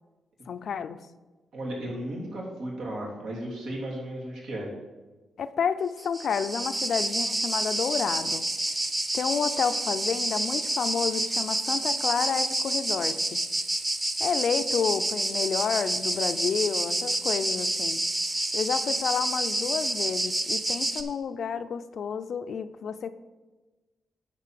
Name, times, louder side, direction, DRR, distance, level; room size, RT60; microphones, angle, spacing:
voice 1, 0.5-1.0 5.4-8.4 9.1-13.4 14.2-18.0 18.5-23.1, left 6 dB, 65° left, 12 dB, 0.5 m, -30 dB
voice 2, 1.5-4.7, right 1 dB, 80° right, -3 dB, 3.0 m, -35 dB
sound 1, 6.0-21.0, right 1 dB, 20° right, 1.0 m, -28 dB
9.8 x 4.2 x 7.5 m, 1.2 s
cardioid pair, 100°, 0 cm